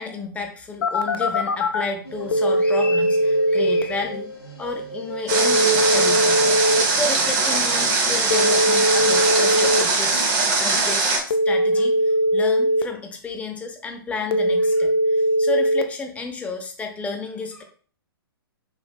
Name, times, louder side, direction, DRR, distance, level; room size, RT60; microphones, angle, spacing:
voice 1, 0.0-4.3 4.6-6.5 6.9-10.2 10.6-17.6, left 3 dB, 10° left, 3 dB, 0.6 m, -31 dB
Telephone, 0.8-1.8 2.3-3.8 5.3-6.8 8.3-9.8 11.3-12.8 14.3-15.8, equal, 70° left, 0.5 m, -20 dB
sound 1, 2.0-10.6, right 1 dB, 90° left, 0.9 m, -36 dB
Water, 5.3-11.2, right 3 dB, 35° right, 0.8 m, -21 dB
5.9 x 2.5 x 2.3 m, 0.44 s
figure-of-eight pair, 115°, 13 cm